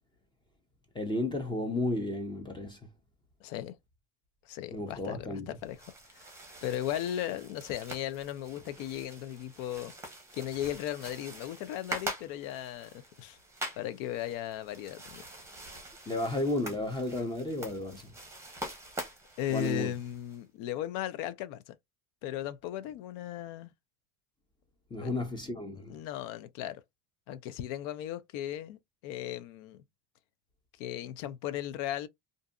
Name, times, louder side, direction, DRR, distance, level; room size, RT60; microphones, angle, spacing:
voice 1, 0.9-2.8 4.7-5.5 16.1-18.1 19.5-19.9 24.9-25.9, left 2 dB, 10° left, 0.3 m, -33 dB
voice 2, 3.4-3.8 4.5-5.8 6.1-6.3 6.6-9.9 10.3-13.4 13.8-15.2 19.4-21.8 22.2-23.7 25.0-25.2 25.9-26.8 27.3-29.8 30.8-32.1, left 12 dB, 75° left, 0.6 m, -36 dB
sound 1, 5.6-20.4, right 1 dB, 5° right, 0.7 m, -44 dB
2.6 x 2.6 x 2.2 m
cardioid pair, 145°, 48 cm